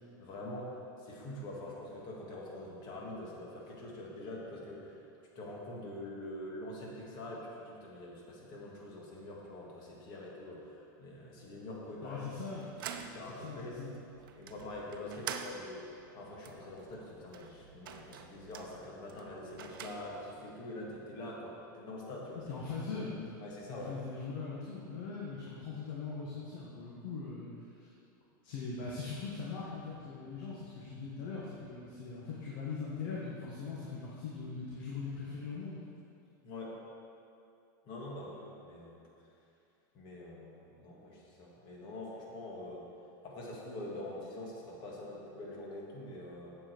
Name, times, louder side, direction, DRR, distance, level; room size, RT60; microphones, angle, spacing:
voice 1, 0.0-5.0 5.4-12.4 13.0-13.8 14.3-22.5 23.4-23.9 36.4-36.8 37.9-39.0 39.9-42.9 43.2-46.6, left 1 dB, 40° left, -3 dB, 1.9 m, -45 dB
voice 2, 12.0-12.7 13.3-14.0 22.3-23.2 23.7-27.5 27.8-27.9 28.4-35.8, left 4 dB, 65° left, -5 dB, 1.4 m, -41 dB
sound 1, 12.5-20.4, right 8 dB, 85° right, 0.6 m, -47 dB
7.6 x 7.5 x 4.5 m, 2.6 s
supercardioid pair, 140°, 11 cm